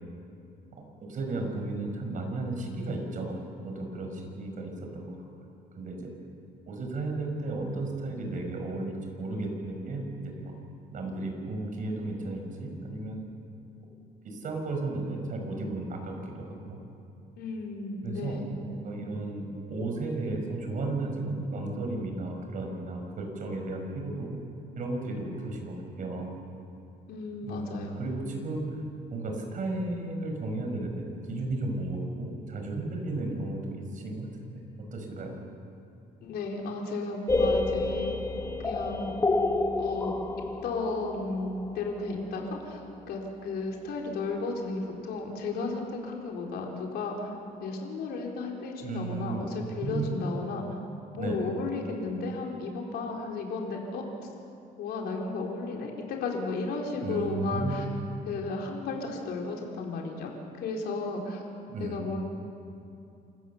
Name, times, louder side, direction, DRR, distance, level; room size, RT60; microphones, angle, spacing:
voice 1, 0.8-3.4 3.6-5.2 5.8-6.1 6.7-10.5 10.9-13.2 14.2-16.8 18.0-24.3 24.8-26.4 27.4-28.6 29.1-34.6 34.9-35.4 48.8-49.5 49.8-50.2 51.1-51.5 57.0-57.8 61.7-62.0, right 2 dB, 50° right, 3 dB, 5.2 m, -34 dB
voice 2, 17.4-18.5 27.1-28.0 36.2-38.2 38.6-39.1 39.8-40.1 40.6-42.8 43.1-47.4 47.6-50.7 51.1-54.0 54.8-57.9 58.3-61.4 61.8-62.2, left 3 dB, 70° left, 0 dB, 3.7 m, -34 dB
sound 1, 37.3-43.0, left 2 dB, 15° left, 1.1 m, -29 dB
27.0 x 15.5 x 7.1 m, 2.7 s
cardioid pair, 110°, 17 cm